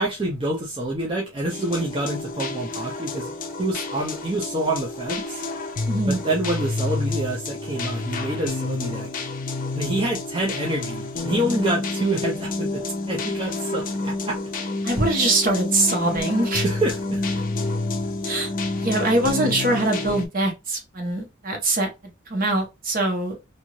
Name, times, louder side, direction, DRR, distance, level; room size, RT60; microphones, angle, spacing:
voice 1, 0.0-3.3 3.6-5.4 6.1-9.1 9.7-14.4 16.6-17.4, right 1 dB, 25° right, 0.6 m, -27 dB
sound 1, 1.5-20.3, left 3 dB, 40° left, 0.5 m, -29 dB
voice 2, 5.9-6.2 14.8-16.6 18.2-18.5 18.8-21.9 22.3-23.3, right 2 dB, 45° right, 1.1 m, -23 dB
2.7 x 2.6 x 3.0 m
head